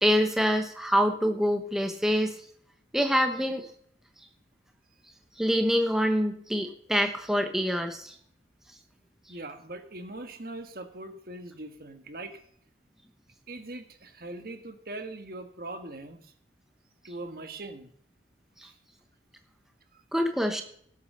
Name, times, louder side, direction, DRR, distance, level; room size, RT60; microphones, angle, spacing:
voice 1, 0.0-2.3 2.9-3.7 5.4-8.1 20.1-20.6, equal, 5° right, 5 dB, 1.1 m, -25 dB
voice 2, 9.3-12.4 13.5-16.3 17.0-17.9 18.6-18.7 19.9-20.0, right 2 dB, 55° right, 7 dB, 1.7 m, -41 dB
17.5 x 8.4 x 5.6 m, 0.64 s
head